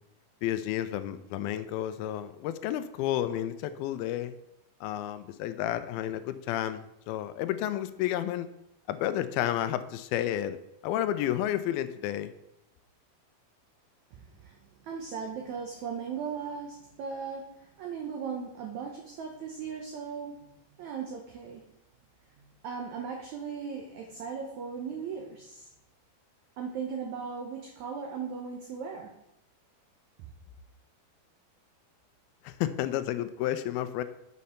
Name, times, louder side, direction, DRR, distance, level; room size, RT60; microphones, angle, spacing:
voice 1, 0.4-4.4 4.8-8.5 8.9-10.6 10.8-12.3 32.4-34.0, left 12 dB, 85° left, 12 dB, 2.4 m, -31 dB
voice 2, 14.1-20.5 20.8-21.7 22.4-25.7 26.6-29.1 30.2-30.3, right 6 dB, 70° right, 1 dB, 1.8 m, -38 dB
8.4 x 5.3 x 5.7 m, 0.83 s
omnidirectional pair, 4.3 m